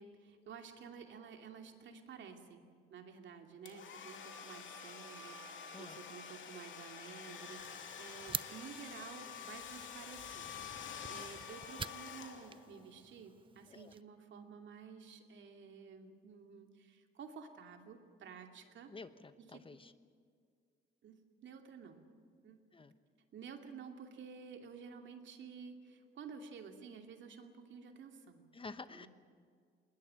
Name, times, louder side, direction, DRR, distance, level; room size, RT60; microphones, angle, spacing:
voice 1, 0.0-2.6 2.9-18.9 19.5-19.6 21.0-22.0 22.4-22.6 23.3-28.5 28.9-29.1, right 6 dB, 70° right, 5 dB, 2.6 m, -52 dB
Domestic sounds home sounds, 3.7-12.8, left 7 dB, 75° left, 2.7 m, -48 dB
sound 1, 7.6-14.0, right 5 dB, 25° right, 0.6 m, -48 dB
voice 2, 18.9-19.9 22.7-22.9 28.5-29.1, left 3 dB, 25° left, 12 dB, 1.0 m, -50 dB
21.0 x 20.0 x 8.9 m, 2.1 s
cardioid pair, 90°, 20 cm